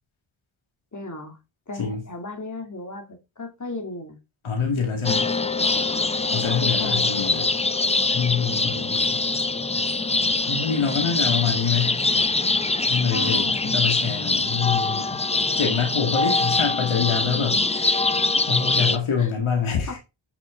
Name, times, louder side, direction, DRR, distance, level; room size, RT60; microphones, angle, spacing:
voice 1, 0.9-1.4 1.7-4.2 6.5-7.4 13.1-13.6 19.2-19.3 19.9-20.0, left 3 dB, 35° left, 2.7 m, -35 dB
voice 2, 4.4-5.2 6.3-7.5 8.1-9.2 10.5-12.0 12.9-15.2 15.6-18.0 18.5-20.0, left 6 dB, 80° left, 2.1 m, -25 dB
sound 1, 5.0-19.0, left 3 dB, 15° left, 0.5 m, -23 dB
7.5 x 6.0 x 3.8 m
cardioid pair, 50°, 48 cm